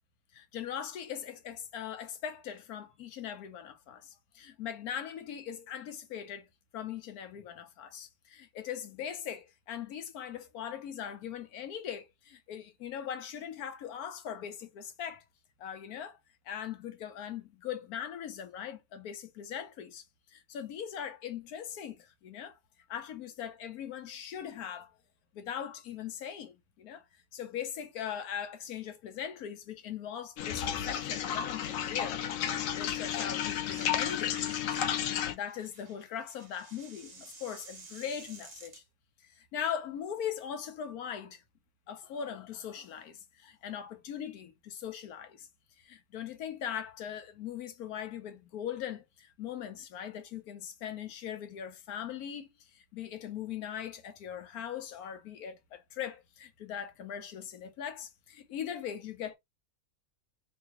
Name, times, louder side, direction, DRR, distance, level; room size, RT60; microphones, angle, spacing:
voice 1, 0.3-6.5 6.7-15.2 15.6-16.2 16.5-22.6 22.9-24.9 25.3-27.0 27.3-32.2 32.7-34.4 35.2-38.8 39.3-41.4 41.9-45.5 45.8-59.4, left 9 dB, 90° left, 1.3 m, -40 dB
sound 1, 30.4-35.3, left 9 dB, 70° left, 0.9 m, -32 dB
sound 2, 33.6-34.0 34.3-38.8, right 4 dB, 35° right, 0.8 m, -52 dB
3.1 x 2.9 x 2.9 m
omnidirectional pair, 1.5 m